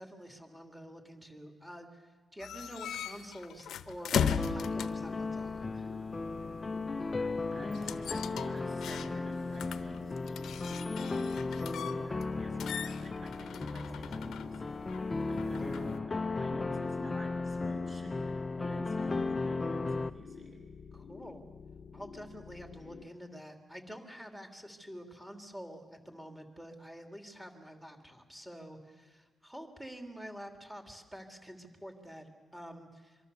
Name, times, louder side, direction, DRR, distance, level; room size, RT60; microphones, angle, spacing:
voice 1, 0.0-4.2 4.5-5.9 15.2-15.7 20.9-21.4 21.9-33.3, equal, 5° right, 3 dB, 2.9 m, -48 dB
sound 1, 2.4-5.1 7.7-9.3 9.6-12.3 12.6-16.0, left 8 dB, 85° left, 0.9 m, -38 dB
sound 2, 4.1-20.1, left 3 dB, 25° left, 0.7 m, -35 dB
sound 3, 4.5-23.1, left 6 dB, 50° left, 0.9 m, -50 dB
voice 2, 7.5-14.9 15.3-20.6, right 1 dB, 30° right, 2 dB, 6.9 m, -48 dB
26.5 x 23.5 x 7.0 m, 1.4 s
cardioid pair, 120°, 0 cm